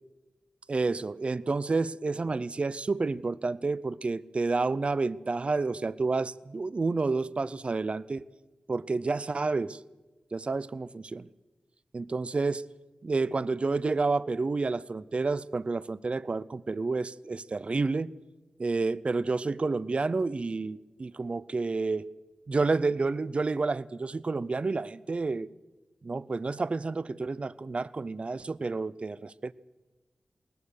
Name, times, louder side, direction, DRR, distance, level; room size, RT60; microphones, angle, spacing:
voice 1, 0.7-8.2 8.7-9.8 10.3-11.3 11.9-12.6 13.0-18.1 18.6-22.1 22.5-25.5 26.0-29.5, right 3 dB, 45° right, 0.5 m, -30 dB
21.0 x 19.5 x 6.5 m
wide cardioid pair, 85°, 3 cm